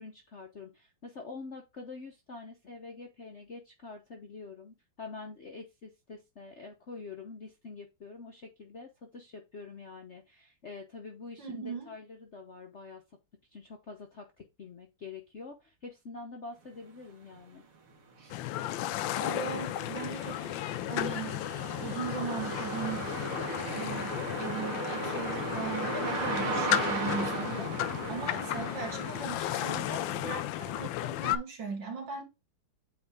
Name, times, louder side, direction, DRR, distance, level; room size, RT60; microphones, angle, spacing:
voice 1, 0.0-13.0 13.5-17.6, left 4 dB, 50° left, 0.9 m, -46 dB
voice 2, 11.4-11.9 18.2-18.4 19.1-20.6 20.9-21.4 21.8-23.1 23.7-27.7 28.1-32.2, right 5 dB, 60° right, 2.6 m, -39 dB
sound 1, 17.3-17.4 17.9-30.8, right 3 dB, 80° right, 2.5 m, -37 dB
sound 2, 18.3-31.4, left 14 dB, 75° left, 1.2 m, -34 dB
8.6 x 3.4 x 3.6 m
omnidirectional pair, 2.3 m